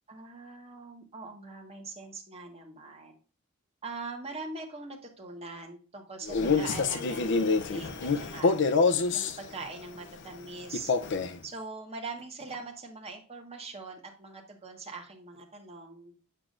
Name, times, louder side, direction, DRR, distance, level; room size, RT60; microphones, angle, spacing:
voice 1, 0.1-3.2 3.8-8.6 9.1-10.9 11.4-16.1, right 3 dB, 30° right, 1 dB, 1.4 m, -42 dB
Male speech man speaking, 6.2-9.4 10.7-11.4, left 4 dB, 60° left, 0.5 m, -26 dB
7.2 x 6.9 x 2.5 m, 0.36 s
head